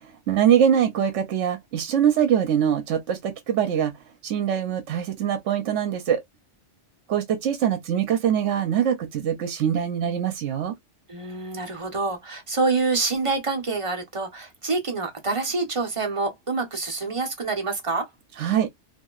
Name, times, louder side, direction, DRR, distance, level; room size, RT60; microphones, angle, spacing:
voice 1, 0.0-3.9 4.2-6.2 7.1-10.7 18.4-18.7, right 9 dB, 75° right, 1.0 m, -23 dB
voice 2, 11.1-18.1, right 3 dB, 30° right, 0.7 m, -26 dB
2.8 x 2.5 x 2.3 m
omnidirectional pair, 1.2 m